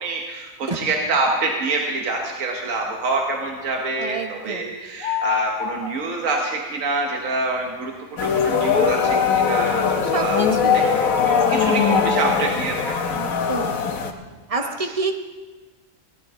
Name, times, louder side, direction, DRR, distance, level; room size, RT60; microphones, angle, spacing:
voice 1, 0.0-10.4 10.7-13.2 14.5-14.9, right 3 dB, 70° right, 0 dB, 1.6 m, -26 dB
voice 2, 4.0-4.6 10.0-11.0 13.1-13.9 14.5-15.1, right 3 dB, 30° right, 5 dB, 0.8 m, -28 dB
sound 1, 5.0-5.9 10.5-10.7 11.4-12.6, left 8 dB, 65° left, 1.5 m, -27 dB
sound 2, 8.2-14.1, left 6 dB, 85° left, 1.4 m, -20 dB
17.5 x 12.5 x 3.6 m, 1.3 s
omnidirectional pair, 1.4 m